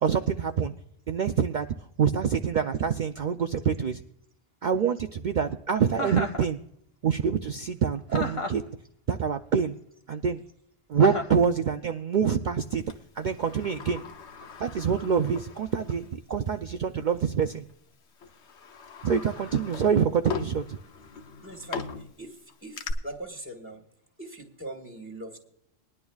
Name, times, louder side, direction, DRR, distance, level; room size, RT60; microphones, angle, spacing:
voice 1, 0.0-0.7 1.1-1.7 2.0-4.0 4.6-6.6 7.0-8.6 9.1-9.7 10.1-10.4 10.9-12.8 13.2-14.0 14.6-17.6 19.0-20.8, right 7 dB, 60° right, 7 dB, 0.5 m, -26 dB
Chuckle chortle, 5.9-6.5 8.1-8.7 11.0-11.4, left 2 dB, 30° left, 0.9 m, -32 dB
Sliding door, 12.9-16.1 16.5-16.6 17.5-17.7 18.2-22.9, left 5 dB, 70° left, 1.1 m, -40 dB
voice 2, 21.4-21.9 22.2-22.4 22.6-23.8 24.2-25.4, right 1 dB, 10° right, 4 dB, 1.6 m, -40 dB
20.0 x 11.0 x 2.3 m, 0.72 s
omnidirectional pair, 1.2 m